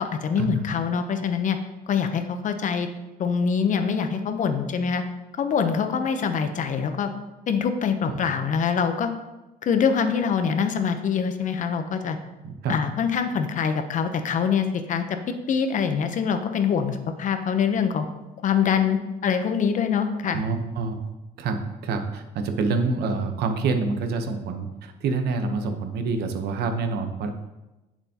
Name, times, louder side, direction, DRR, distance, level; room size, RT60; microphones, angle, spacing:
voice 1, 0.0-1.6 1.9-2.9 3.2-5.0 5.4-7.1 7.5-9.1 9.6-12.2 12.7-18.1 18.4-20.4, left 6 dB, 50° left, 8 dB, 0.7 m, -24 dB
voice 2, 12.4-12.8 20.3-21.0 21.4-27.3, right 4 dB, 75° right, 6 dB, 0.9 m, -27 dB
7.8 x 7.0 x 2.8 m, 1.0 s
cardioid pair, 110°, 17 cm